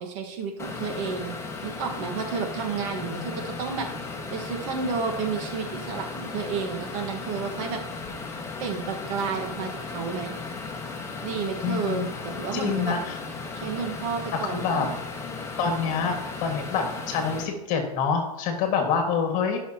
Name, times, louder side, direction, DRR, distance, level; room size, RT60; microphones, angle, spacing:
voice 1, 0.0-1.3 1.6-3.9 4.3-7.8 8.6-10.3 11.2-13.0 13.5-15.0, right 5 dB, 55° right, 3 dB, 1.5 m, -31 dB
sound 1, 0.6-17.4, left 4 dB, 15° left, 1.5 m, -36 dB
voice 2, 3.0-3.6 11.6-12.1 12.5-13.2 14.4-14.9 15.6-19.6, left 6 dB, 40° left, 4 dB, 1.8 m, -27 dB
15.5 x 6.0 x 2.9 m, 0.96 s
hypercardioid pair, 130°, 20 cm